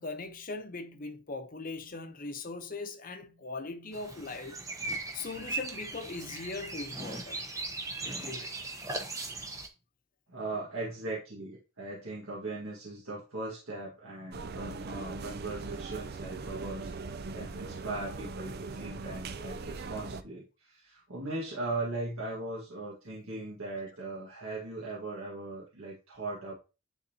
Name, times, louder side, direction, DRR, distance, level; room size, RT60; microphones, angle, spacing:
voice 1, 0.0-4.6 5.1-7.5 8.0-8.6, left 3 dB, 40° left, 0.8 m, -40 dB
sound 1, 3.9-9.7, right 2 dB, 15° right, 0.8 m, -38 dB
voice 2, 10.3-16.9 17.3-26.5, right 2 dB, 80° right, 1.8 m, -39 dB
sound 2, 14.3-20.2, right 3 dB, 45° right, 0.4 m, -40 dB
9.7 x 3.9 x 2.9 m
head